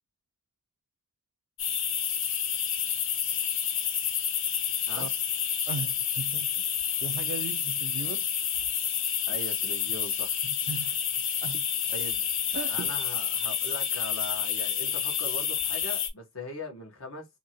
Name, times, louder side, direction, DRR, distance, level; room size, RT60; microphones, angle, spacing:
sound 1, 1.6-16.1, left 8 dB, 65° left, 0.6 m, -29 dB
voice 1, 5.7-6.6 7.0-8.3 10.4-11.0 11.4-11.7 12.5-12.9, right 5 dB, 60° right, 0.3 m, -37 dB
voice 2, 9.3-10.4 11.9-12.3 12.7-17.3, left 2 dB, 85° left, 1.1 m, -40 dB
2.8 x 2.7 x 2.8 m
head